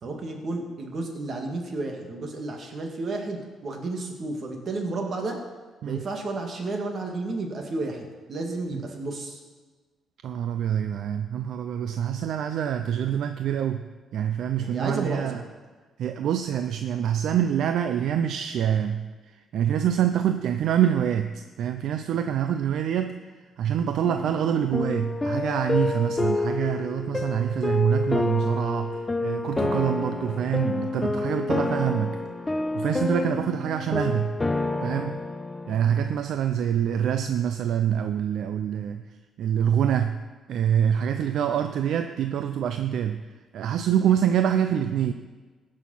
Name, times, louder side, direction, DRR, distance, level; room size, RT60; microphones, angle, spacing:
voice 1, 0.0-5.4 5.8-9.4 14.6-15.4 33.2-33.4, right 2 dB, 50° right, 2 dB, 2.1 m, -32 dB
voice 2, 10.2-13.9 14.1-15.4 16.0-32.2 32.7-34.4 34.8-35.2 35.7-39.1 39.4-40.2 40.5-43.3 43.5-45.1, right 9 dB, 75° right, 8 dB, 0.5 m, -26 dB
sound 1, 24.0-36.2, left 3 dB, 20° left, 0.6 m, -28 dB
16.5 x 6.4 x 5.7 m, 1.4 s
cardioid pair, 90°, 0 cm